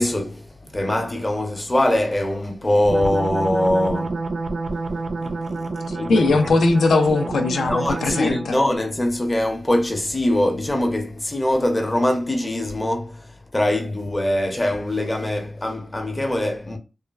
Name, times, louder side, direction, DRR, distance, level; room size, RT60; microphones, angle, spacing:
voice 1, 0.0-4.3 4.9-6.3 7.7-16.8, left 1 dB, 15° left, 0.5 m, -23 dB
sound 1, 2.8-8.6, right 3 dB, 45° right, 0.3 m, -28 dB
voice 2, 5.9-8.6, left 3 dB, 90° left, 0.4 m, -20 dB
3.0 x 2.2 x 2.3 m
wide cardioid pair, 160°, 0 cm